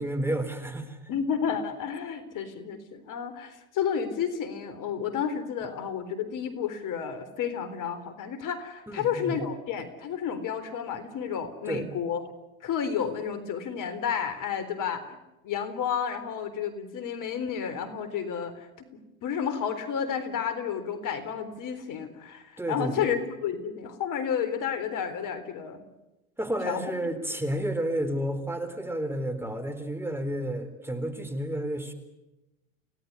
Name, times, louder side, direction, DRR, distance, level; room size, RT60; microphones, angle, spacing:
voice 1, 0.0-1.0 8.9-9.4 11.7-11.9 22.6-23.1 26.4-31.9, right 1 dB, 5° right, 9 dB, 4.1 m, -31 dB
voice 2, 1.1-12.2 12.6-15.2 15.4-18.9 19.2-25.8 26.6-26.8, left 7 dB, 50° left, 12 dB, 3.9 m, -31 dB
30.0 x 18.0 x 9.7 m, 1.0 s
hypercardioid pair, 90°, 42 cm